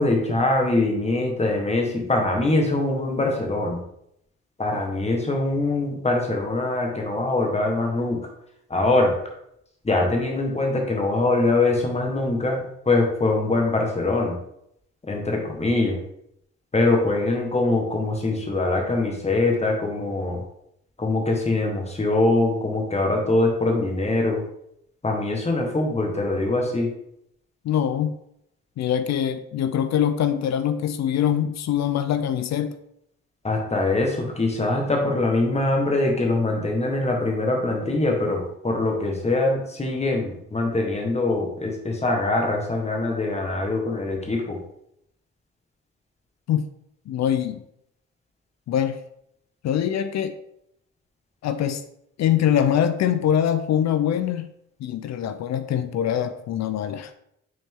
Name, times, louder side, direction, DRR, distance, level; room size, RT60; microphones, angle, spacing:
voice 1, 0.0-3.8 4.6-8.2 8.7-9.1 9.8-14.4 15.1-16.0 16.7-20.4 21.0-24.4 25.0-26.9 33.4-44.6, left 2 dB, 20° left, 1 dB, 1.6 m, -23 dB
voice 2, 27.6-28.1 28.8-32.8 46.5-46.7 47.1-47.6 48.7-49.0 49.6-50.4 51.4-51.8 52.2-54.5 54.8-57.1, left 9 dB, 65° left, 10 dB, 0.5 m, -23 dB
6.3 x 4.2 x 3.7 m, 0.76 s
cardioid pair, 90°, 30 cm